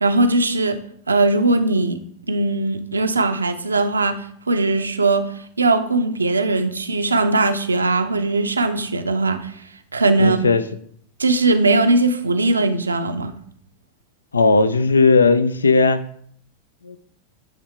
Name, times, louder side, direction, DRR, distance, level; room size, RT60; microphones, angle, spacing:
voice 1, 0.0-0.8 1.1-2.0 2.3-5.2 5.6-9.5 9.9-10.4 11.2-13.3, right 2 dB, 75° right, 8 dB, 0.6 m, -19 dB
voice 2, 10.2-10.6 14.3-16.0 16.8-17.0, left 4 dB, 75° left, 14 dB, 0.4 m, -16 dB
9.3 x 3.5 x 4.5 m, 0.65 s
figure-of-eight pair, 90°, 0 cm